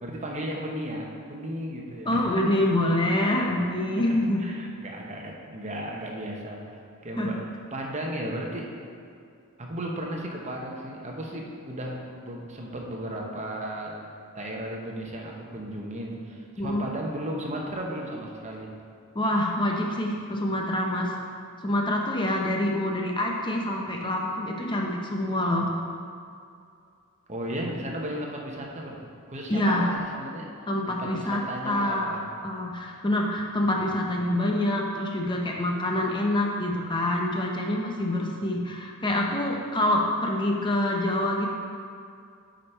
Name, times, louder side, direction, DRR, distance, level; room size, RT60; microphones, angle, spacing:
voice 1, 0.0-2.3 4.1-8.7 9.6-14.0 14.3-18.7 27.3-29.0 29.3-30.5 30.9-32.3, right 1 dB, 35° right, -1 dB, 1.0 m, -35 dB
voice 2, 2.1-4.4 7.2-7.3 16.6-16.8 19.1-21.1 21.6-25.7 29.5-29.9 30.7-32.1 32.4-41.5, left 1 dB, 20° left, 0 dB, 0.6 m, -26 dB
8.8 x 5.2 x 4.4 m, 2.4 s
head